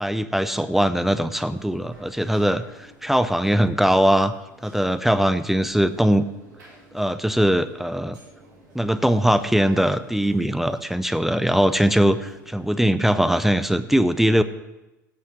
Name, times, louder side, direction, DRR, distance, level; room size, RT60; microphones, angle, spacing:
voice 1, 0.0-4.3 4.6-6.2 6.9-8.2 8.7-14.4, equal, 5° right, 13 dB, 0.5 m, -21 dB
sound 1, 1.3-12.8, right 1 dB, 80° right, 4.2 m, -52 dB
16.0 x 5.6 x 6.4 m, 0.99 s
figure-of-eight pair, 80°, 10 cm